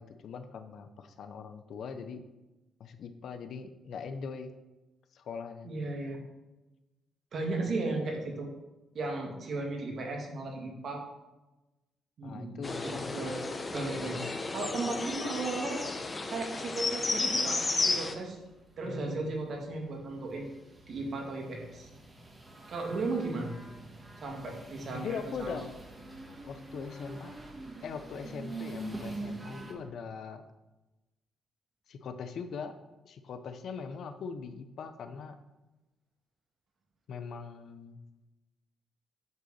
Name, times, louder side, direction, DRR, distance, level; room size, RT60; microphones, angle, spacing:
voice 1, 0.0-2.2 2.8-4.5 5.1-5.7 12.2-13.3 18.8-19.4 24.9-25.7 26.4-27.3 27.8-30.4 31.9-32.7 33.0-35.4 37.1-38.0, left 6 dB, 65° left, 9 dB, 0.7 m, -41 dB
voice 2, 5.6-6.2 7.3-8.5 8.9-11.1 12.2-13.4 13.7-14.2 14.5-15.8 16.3-18.4 18.8-20.5 20.9-21.9 22.7-23.5 24.2-25.6, right 3 dB, 55° right, 1 dB, 2.0 m, -35 dB
sound 1, 12.6-18.1, left 3 dB, 25° left, 0.9 m, -33 dB
sound 2, 17.9-29.7, right 2 dB, 25° right, 1.7 m, -45 dB
8.2 x 3.9 x 6.5 m, 1.0 s
cardioid pair, 90°, 0 cm